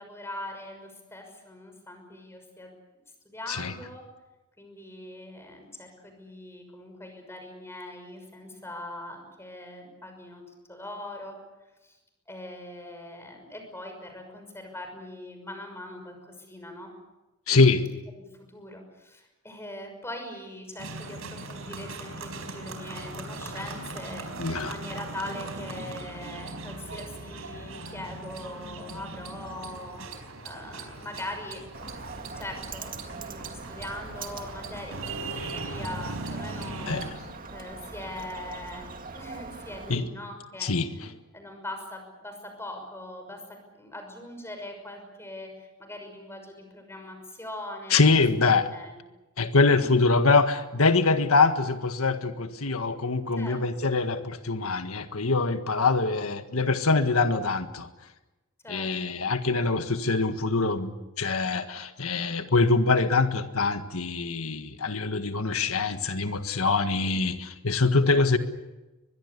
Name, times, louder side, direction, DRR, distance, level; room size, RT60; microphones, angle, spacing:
voice 1, 0.0-2.7 3.2-4.0 4.6-10.4 10.7-11.4 11.8-12.0 12.3-16.9 18.2-24.3 24.6-30.0 30.4-31.6 32.4-37.0 37.5-41.0 41.3-43.4 43.8-48.1 48.7-49.0 49.8-50.1 53.4-53.6 58.6-59.2, left 1 dB, 10° left, 5 dB, 6.1 m, -41 dB
voice 2, 17.5-17.8 24.4-24.7 36.9-37.1 39.9-40.1 40.6-40.9 47.9-48.7 49.4-57.9 58.7-68.4, left 3 dB, 80° left, 8 dB, 1.7 m, -24 dB
sound 1, 20.8-37.1, right 2 dB, 75° right, 4.7 m, -39 dB
Bird, 31.7-40.0, right 4 dB, 40° right, 2.0 m, -42 dB
23.5 x 21.5 x 8.3 m, 1.1 s
head